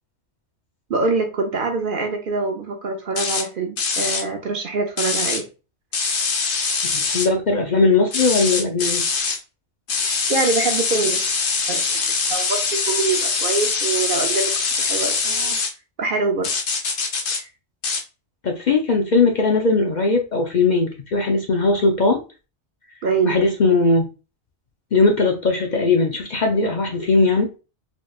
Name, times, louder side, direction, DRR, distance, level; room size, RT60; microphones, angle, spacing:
voice 1, 0.9-5.5 10.3-11.2 11.7-12.0 12.3-14.5 14.8-15.6 16.0-16.5 23.0-23.4, right 3 dB, 55° right, 0.7 m, -24 dB
sound 1, 3.2-3.4 3.8-4.2 5.0-5.4 5.9-7.3 8.1-9.4 9.9-15.7 16.4-17.4 17.8-18.0, left 4 dB, 70° left, 1.1 m, -23 dB
voice 2, 6.8-9.0 18.4-22.2 23.2-24.1 24.9-27.5, left 3 dB, 50° left, 0.6 m, -19 dB
4.2 x 3.2 x 2.3 m
omnidirectional pair, 1.2 m